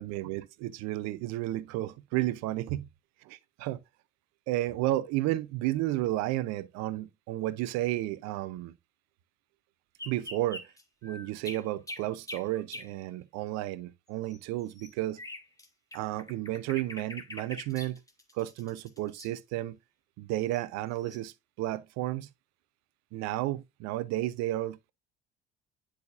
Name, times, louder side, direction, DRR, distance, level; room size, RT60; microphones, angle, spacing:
voice 1, 0.0-2.8 3.3-3.8 4.5-8.7 10.1-10.6 11.0-15.2 15.9-18.0 18.3-19.8 20.2-22.3 23.1-24.9, right 15 dB, 55° right, 0.8 m, -32 dB
sound 1, 10.0-12.9 14.3-15.7 15.9-19.3 20.5-20.6 21.1-21.2, left 1 dB, 10° left, 1.8 m, -44 dB
10.5 x 5.0 x 2.6 m
figure-of-eight pair, 55°, 32 cm